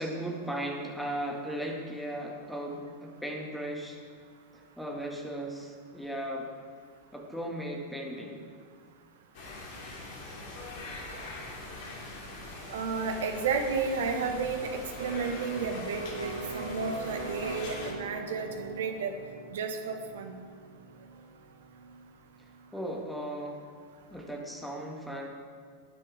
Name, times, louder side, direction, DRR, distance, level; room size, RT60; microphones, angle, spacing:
voice 1, 0.0-4.0 4.5-6.5 7.1-8.4 22.4-23.6 24.1-25.3, right 1 dB, ahead, 1 dB, 2.0 m, -37 dB
sound 1, 9.3-17.9, left 2 dB, 45° left, 2.7 m, -42 dB
voice 2, 12.7-19.1 19.5-20.4, right 5 dB, 60° right, 5 dB, 1.6 m, -32 dB
Electric guitar, 15.0-22.7, right 2 dB, 85° right, 1.5 m, -42 dB
19.5 x 9.8 x 3.6 m, 2.1 s
figure-of-eight pair, 90°, 0 cm